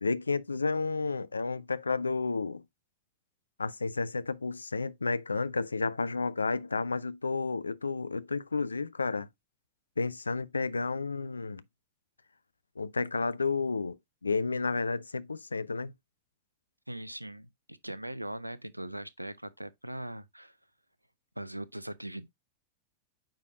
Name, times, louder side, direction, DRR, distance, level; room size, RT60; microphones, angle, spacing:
voice 1, 0.0-2.6 3.6-9.3 10.0-11.6 12.8-14.0 14.2-15.9, left 4 dB, 80° left, 0.4 m, -31 dB
voice 2, 16.9-20.6 21.4-22.3, right 1 dB, 85° right, 0.5 m, -40 dB
8.8 x 5.0 x 2.4 m
figure-of-eight pair, 90°, 0 cm